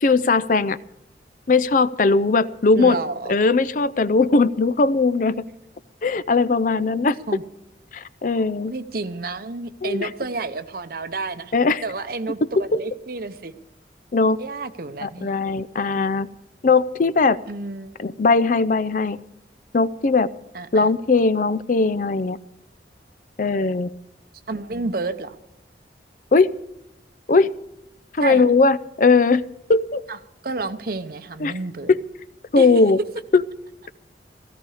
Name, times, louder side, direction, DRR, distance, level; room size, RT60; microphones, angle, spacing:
voice 1, 0.0-0.8 1.5-3.0 3.3-5.3 6.0-7.2 7.9-8.7 9.8-10.1 11.5-11.8 12.6-12.7 14.1-14.4 15.0-16.3 16.6-17.4 18.0-19.2 19.7-20.3 20.7-22.4 23.4-23.9 26.3-26.5 27.3-27.5 28.1-29.4 29.7-30.0 31.4-31.5 31.9-32.0 32.5-33.0 33.3-33.4, left 3 dB, 50° left, 16 dB, 0.5 m, -19 dB
voice 2, 2.7-3.4 7.3-7.4 8.7-11.5 11.8-13.5 14.4-15.3 17.5-17.9 20.5-20.9 24.5-25.4 28.2-28.5 30.1-30.2 30.4-31.9 32.6-32.7, right 3 dB, 55° right, 11 dB, 0.8 m, -30 dB
16.0 x 15.0 x 4.9 m, 0.83 s
head